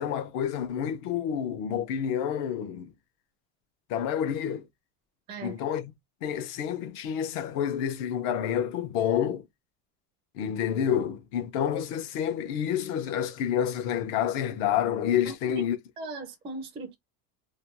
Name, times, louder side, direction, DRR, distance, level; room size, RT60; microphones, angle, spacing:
voice 1, 0.0-2.9 3.9-4.7 5.4-5.9 6.2-9.5 10.3-15.8, left 9 dB, 55° left, 0.6 m, -28 dB
voice 2, 16.0-16.9, right 3 dB, 15° right, 0.3 m, -38 dB
2.5 x 2.2 x 2.8 m
cardioid pair, 175°, 37 cm